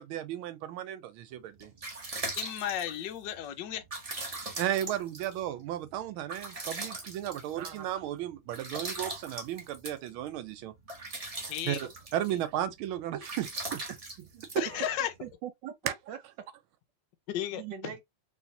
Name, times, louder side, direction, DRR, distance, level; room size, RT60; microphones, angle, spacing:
voice 1, 0.0-1.7 4.6-10.7 11.7-14.6, right 12 dB, 85° right, 1.5 m, -35 dB
sound 1, 1.4-15.3, right 2 dB, 50° right, 0.4 m, -41 dB
voice 2, 2.4-3.8 11.5-11.9 12.3-12.4 14.5-15.1 17.3-17.9, left 11 dB, 70° left, 1.2 m, -34 dB
voice 3, 7.6-7.9 14.7-16.2 17.5-18.0, right 9 dB, 65° right, 1.3 m, -41 dB
3.2 x 3.1 x 2.7 m
omnidirectional pair, 2.3 m